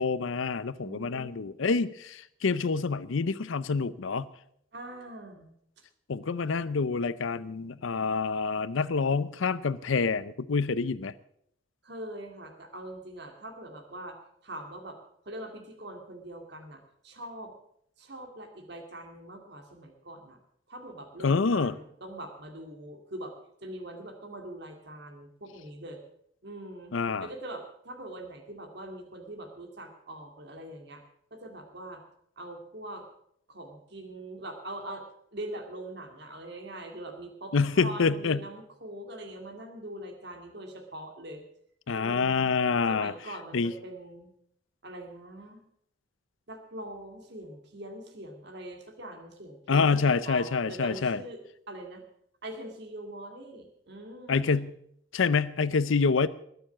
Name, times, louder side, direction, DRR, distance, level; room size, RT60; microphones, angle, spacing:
voice 1, 0.0-4.3 6.1-11.1 21.2-21.7 26.9-27.3 37.5-38.4 41.9-43.1 43.5-43.7 49.7-51.2 54.3-54.7 55.1-56.3, left 4 dB, 75° left, 15 dB, 0.6 m, -27 dB
voice 2, 0.8-1.5 4.7-5.8 11.8-15.0 15.2-17.5 18.0-20.4 20.7-23.3 23.6-26.0 26.4-31.0 31.3-32.0 32.4-33.0 33.5-35.0 35.3-41.4 41.9-42.5 42.9-44.3 44.8-45.6 46.5-51.4 51.7-52.0 52.4-54.7, right 1 dB, 55° right, 3 dB, 2.3 m, -43 dB
20.5 x 6.9 x 7.3 m, 0.70 s
head